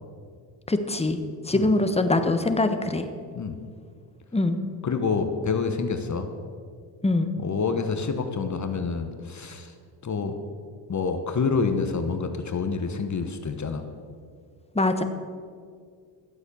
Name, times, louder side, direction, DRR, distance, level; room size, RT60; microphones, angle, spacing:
voice 1, 0.7-1.2 1.5-3.1 4.3-4.6 7.0-7.3 14.7-15.0, left 2 dB, 15° left, 8 dB, 1.2 m, -23 dB
voice 2, 4.8-6.3 7.4-9.7 10.0-10.3 10.9-13.8, left 5 dB, 35° left, 7 dB, 1.3 m, -27 dB
12.0 x 8.2 x 6.9 m, 2.1 s
supercardioid pair, 70°, 47 cm